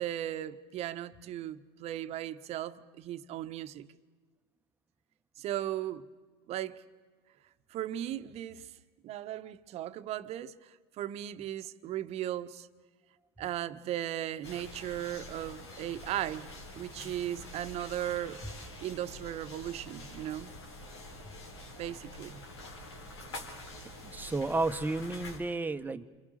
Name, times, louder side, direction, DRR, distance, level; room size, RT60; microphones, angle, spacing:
voice 1, 0.0-3.9 5.4-6.0 6.5-6.8 7.7-8.7 9.0-12.7 13.4-16.5 16.7-18.4 18.8-20.5 21.8-22.4, right 12 dB, 50° right, 1.3 m, -37 dB
sound 1, 14.4-25.4, left 1 dB, 90° left, 4.1 m, -46 dB
voice 2, 24.0-26.0, right 2 dB, 15° right, 1.4 m, -32 dB
29.0 x 26.0 x 6.6 m
hypercardioid pair, 85°, 14 cm